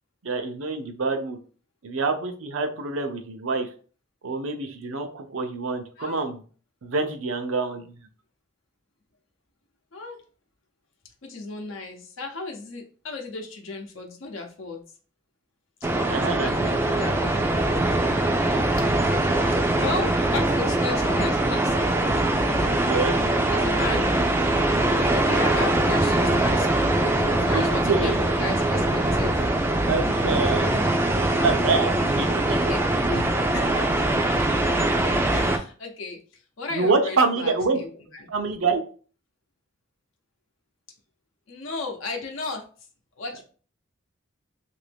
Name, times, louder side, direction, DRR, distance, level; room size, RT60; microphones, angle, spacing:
voice 1, 0.2-1.4 1.8-3.7 4.2-6.4 6.8-8.0 16.1-16.7 22.9-23.2 27.5-28.2 29.9-32.7 36.7-37.8 38.3-38.8, right 4 dB, 85° right, 6 dB, 0.6 m, -26 dB
voice 2, 11.2-14.8 16.1-18.0 18.9-19.2 19.5-22.1 22.5-22.8 23.5-24.2 25.2-29.5 30.0-30.8 32.2-32.8 33.1-34.3 35.3-36.2 36.6-38.3 41.5-42.6 43.2-43.4, left 3 dB, 80° left, 2 dB, 0.7 m, -35 dB
sound 1, 15.8-35.6, right 1 dB, 10° right, 0.3 m, -22 dB
2.9 x 2.6 x 3.3 m, 0.40 s
head